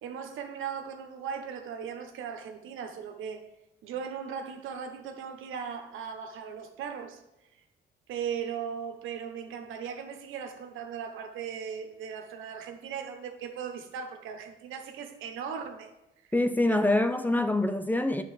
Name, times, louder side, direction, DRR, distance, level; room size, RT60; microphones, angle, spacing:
voice 1, 0.0-3.4 3.8-7.2 8.1-15.9 16.7-16.8, right 7 dB, 85° right, 1.1 m, -38 dB
voice 2, 16.3-18.2, left 1 dB, 10° left, 0.6 m, -25 dB
9.1 x 3.8 x 6.5 m
cardioid pair, 90°, 20 cm